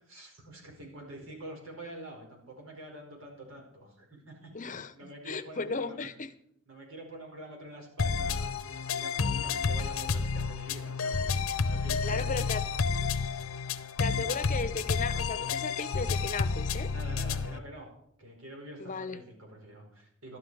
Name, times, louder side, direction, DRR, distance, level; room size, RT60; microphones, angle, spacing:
voice 1, 0.1-4.7 4.9-6.2 6.7-8.5 8.9-12.5 16.9-20.4, right 1 dB, 80° right, 0 dB, 4.9 m, -47 dB
voice 2, 4.5-6.3 12.0-12.6 14.0-16.9 18.8-19.2, left 4 dB, 40° left, 12 dB, 0.8 m, -36 dB
sound 1, 8.0-17.6, left 5 dB, 85° left, 0.8 m, -30 dB
12.5 x 11.0 x 4.8 m, 0.70 s
head